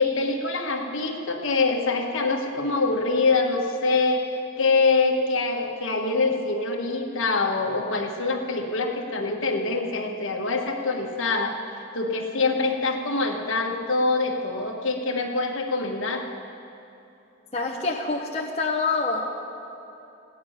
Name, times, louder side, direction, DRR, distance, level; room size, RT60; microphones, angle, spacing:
voice 1, 0.0-11.6 11.9-16.2, left 3 dB, 70° left, 1 dB, 1.4 m, -24 dB
voice 2, 17.5-19.2, left 3 dB, 30° left, -2 dB, 0.9 m, -26 dB
16.0 x 10.0 x 5.8 m, 2.8 s
head